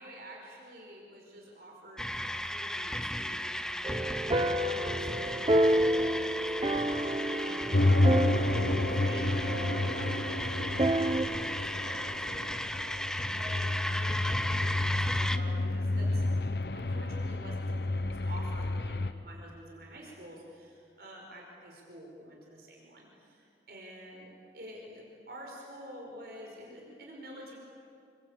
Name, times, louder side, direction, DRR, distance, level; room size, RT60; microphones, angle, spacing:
voice 1, 0.0-3.7 4.2-13.1 13.3-16.2 16.7-27.6, equal, 60° right, -1 dB, 5.3 m, -49 dB
sound 1, 2.0-15.4, left 1 dB, 5° left, 0.8 m, -35 dB
sound 2, 3.8-11.2, right 1 dB, 25° right, 0.8 m, -30 dB
sound 3, 7.7-19.1, left 2 dB, 60° left, 1.0 m, -30 dB
28.0 x 24.5 x 8.7 m, 2.5 s
head